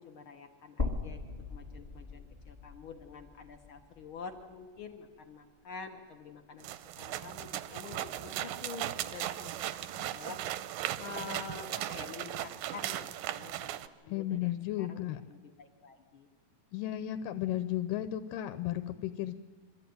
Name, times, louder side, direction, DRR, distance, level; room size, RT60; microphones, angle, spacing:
voice 1, 0.0-6.7 7.0-10.4 10.7-16.3, left 5 dB, 65° left, 5 dB, 1.3 m, -47 dB
sound 1, 0.8-4.9 5.3-5.4 6.8-6.9, left 3 dB, 25° left, 0.9 m, -40 dB
sound 2, 6.6-13.9, right 13 dB, 85° right, 2.4 m, -37 dB
voice 2, 14.1-15.2 16.7-19.3, left 13 dB, 85° left, 11 dB, 2.4 m, -34 dB
24.0 x 14.0 x 9.4 m, 1.5 s
omnidirectional pair, 3.9 m